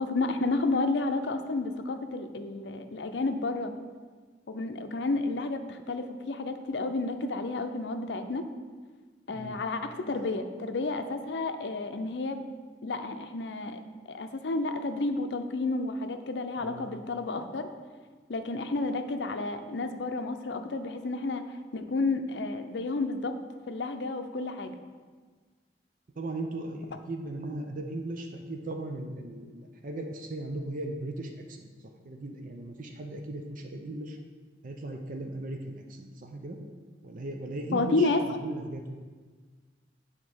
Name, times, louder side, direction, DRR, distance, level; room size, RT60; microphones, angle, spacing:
voice 1, 0.0-3.7 4.5-8.5 9.3-12.4 12.8-13.8 14.1-17.7 18.3-21.4 21.7-23.3 23.7-24.8 37.7-38.2, left 3 dB, 75° left, 7 dB, 0.6 m, -31 dB
voice 2, 26.2-31.7 32.0-34.2 34.6-36.6 37.0-39.0, right 2 dB, 50° right, 3 dB, 0.7 m, -37 dB
7.4 x 3.8 x 6.1 m, 1.5 s
head